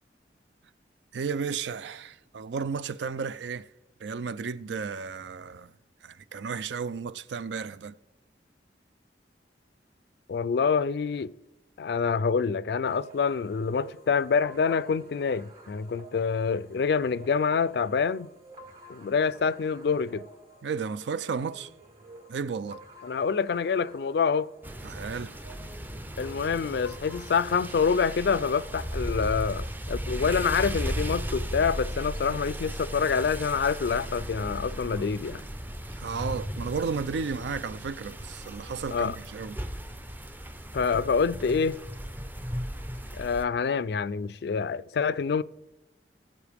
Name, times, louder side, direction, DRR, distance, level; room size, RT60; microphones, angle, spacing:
voice 1, 1.1-3.7 4.0-5.7 6.0-8.0 20.6-21.7 22.3-22.8 24.8-25.3 36.0-39.6, right 5 dB, 80° right, 0.4 m, -33 dB
voice 2, 10.3-11.3 11.8-18.3 18.9-20.3 23.0-24.5 26.2-35.4 38.9-39.2 40.7-41.8 43.2-45.4, left 5 dB, 65° left, 0.4 m, -26 dB
sound 1, 12.9-29.4, right 1 dB, 55° right, 4.5 m, -51 dB
sound 2, 24.6-43.4, equal, 10° right, 0.5 m, -36 dB
21.0 x 7.4 x 3.5 m
head